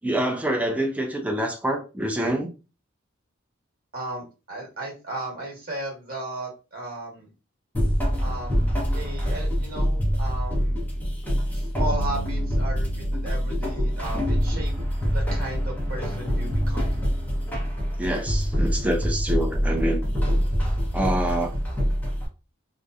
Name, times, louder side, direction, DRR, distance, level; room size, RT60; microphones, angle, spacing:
voice 1, 0.0-2.5 18.0-20.1 20.9-21.5, right 1 dB, 5° right, 0.3 m, -26 dB
voice 2, 3.9-7.3 8.2-10.8 11.5-14.7 15.1-17.0, right 2 dB, 45° right, 1.1 m, -35 dB
sound 1, 7.7-22.3, equal, 10° left, 0.7 m, -25 dB
sound 2, 11.9-17.8 19.0-19.2 19.7-20.7, right 2 dB, 55° left, 0.9 m, -42 dB
2.6 x 2.1 x 2.3 m
head